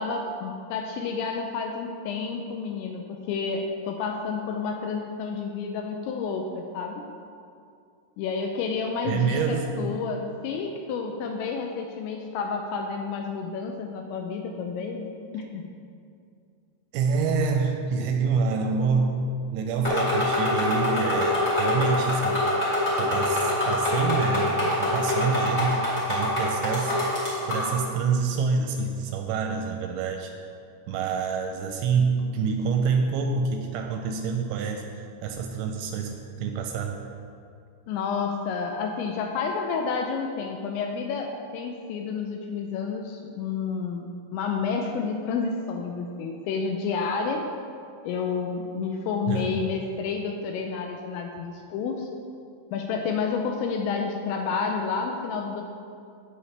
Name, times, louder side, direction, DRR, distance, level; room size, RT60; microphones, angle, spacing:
voice 1, 0.0-7.1 8.2-15.7 37.9-47.5 48.0-52.1 52.7-55.6, left 5 dB, 85° left, 3 dB, 2.7 m, -30 dB
voice 2, 9.0-10.0 15.3-15.5 16.9-19.2 19.5-22.4 23.0-25.7 26.1-27.0 27.5-30.3 30.9-34.8 35.2-36.9 49.3-49.6, right 5 dB, 85° right, 4 dB, 2.8 m, -27 dB
sound 1, 19.8-27.7, left 1 dB, 50° left, 0.8 m, -25 dB
15.5 x 5.5 x 3.3 m, 2.4 s
omnidirectional pair, 5.6 m